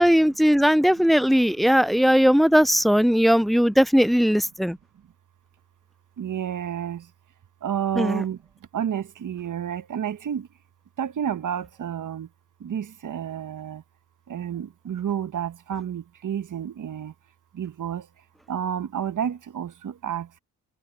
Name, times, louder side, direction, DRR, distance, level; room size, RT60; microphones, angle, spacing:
voice 1, 0.0-4.8 8.0-8.2, equal, ahead, 0.4 m, -19 dB
voice 2, 6.2-7.0 7.6-8.4 8.7-10.5 11.0-12.3 12.6-13.8 14.3-17.1 17.6-18.0 18.5-20.3, right 9 dB, 50° right, 1.3 m, -30 dB
hypercardioid pair, 45°, 39 cm